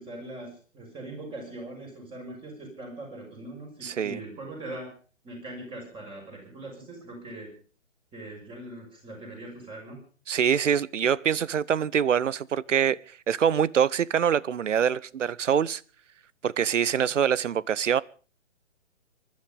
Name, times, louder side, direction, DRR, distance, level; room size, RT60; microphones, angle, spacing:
voice 1, 0.0-4.9 5.2-7.5 8.1-10.0 16.9-17.1, right 1 dB, 15° right, 6.2 m, -41 dB
voice 2, 3.8-4.2 10.3-15.8 16.4-18.0, right 8 dB, 70° right, 0.8 m, -24 dB
23.0 x 12.0 x 5.3 m
figure-of-eight pair, 140°, 38 cm